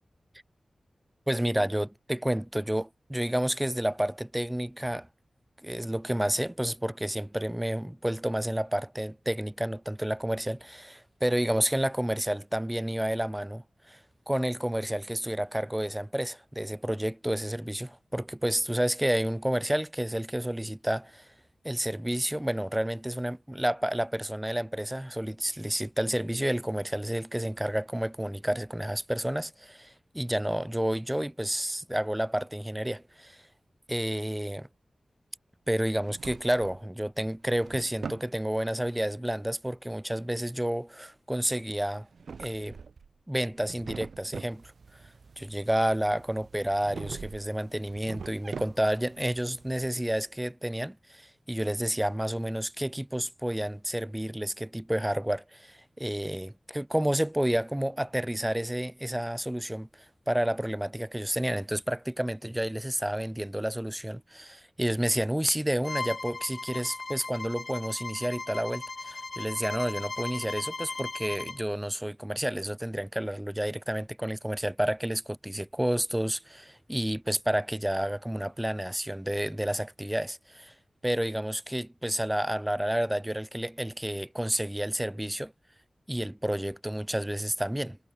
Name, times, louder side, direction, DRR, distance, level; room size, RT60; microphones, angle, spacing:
voice 1, 1.3-5.1 5.6-14.0 14.3-21.3 21.6-33.4 33.9-34.7 35.7-42.1 42.4-42.8 43.3-45.0 45.4-59.9 60.3-80.7 81.0-85.5 86.1-88.0, right 1 dB, 5° right, 1.4 m, -30 dB
Drawer open or close, 35.9-36.8 37.3-38.3 42.0-43.1 43.5-44.6 46.8-47.5 47.8-49.1, right 5 dB, 85° right, 0.5 m, -42 dB
Cat, 44.5-49.9, right 5 dB, 70° right, 8.0 m, -56 dB
Bowed string instrument, 65.8-71.6, left 3 dB, 40° left, 2.6 m, -38 dB
wide cardioid pair, 120°, 0 cm